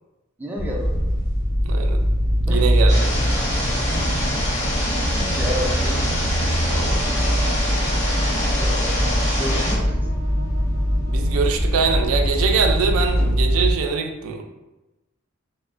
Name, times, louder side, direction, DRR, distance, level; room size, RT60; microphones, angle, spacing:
voice 1, 0.4-1.0 2.5-2.7 4.9-6.0 8.4-9.1 9.4-10.1, equal, 10° right, -2 dB, 0.3 m, -31 dB
sound 1, 0.6-13.7, equal, 80° left, 0.9 m, -22 dB
voice 2, 1.6-2.0 2.5-3.1 6.5-7.0 11.1-14.4, right 6 dB, 90° right, 4 dB, 0.3 m, -23 dB
sound 2, 2.9-9.7, left 1 dB, 35° left, 0.7 m, -26 dB
sound 3, 6.9-11.8, right 1 dB, 50° right, 0.7 m, -39 dB
2.9 x 2.0 x 2.4 m, 1.0 s
head